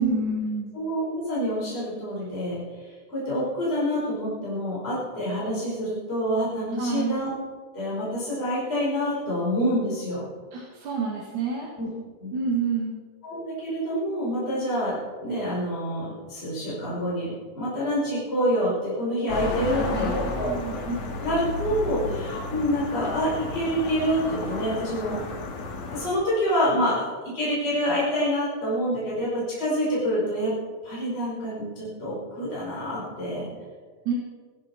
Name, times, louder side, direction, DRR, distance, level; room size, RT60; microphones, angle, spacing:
voice 1, 0.0-0.7 6.8-7.2 10.5-11.7 12.3-13.0 19.6-20.8 34.1-34.2, right 4 dB, 80° right, -4 dB, 3.5 m, -28 dB
voice 2, 0.7-7.3 7.7-10.3 11.8-11.9 12.2-12.4 13.2-20.5 20.8-25.2 25.9-27.1 27.3-30.5 30.8-33.5, equal, 20° left, -8 dB, 5.5 m, -27 dB
sound 1, 19.3-26.1, left 3 dB, 70° left, 3.0 m, -33 dB
16.5 x 15.0 x 4.5 m, 1.5 s
omnidirectional pair, 3.4 m